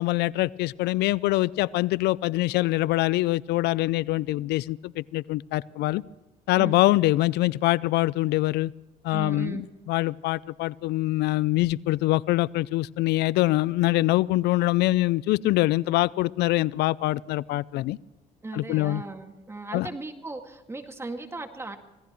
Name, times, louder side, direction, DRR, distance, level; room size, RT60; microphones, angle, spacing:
voice 1, 0.0-6.0 6.5-8.7 9.0-18.0 18.5-19.0 19.7-19.9, left 18 dB, 80° left, 21 dB, 0.4 m, -24 dB
voice 2, 9.1-9.6 18.4-21.8, right 3 dB, 15° right, 5 dB, 2.0 m, -36 dB
26.0 x 18.0 x 3.1 m, 1.1 s
cardioid pair, 110°, 17 cm